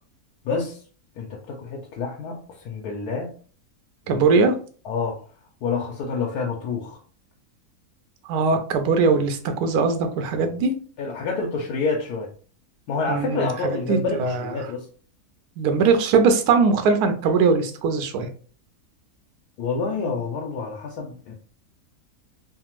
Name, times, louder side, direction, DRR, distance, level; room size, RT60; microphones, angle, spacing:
voice 1, 0.4-0.8 1.2-3.3 4.1-4.2 4.8-5.2 5.6-7.0 11.0-12.3 12.9-14.8 19.6-21.3, left 4 dB, 85° left, 0 dB, 1.2 m, -28 dB
voice 2, 4.1-4.6 8.3-10.7 13.1-13.5 13.9-14.7 15.6-18.3, right 4 dB, 80° right, 7 dB, 1.1 m, -20 dB
3.3 x 2.0 x 2.9 m, 0.41 s
omnidirectional pair, 1.6 m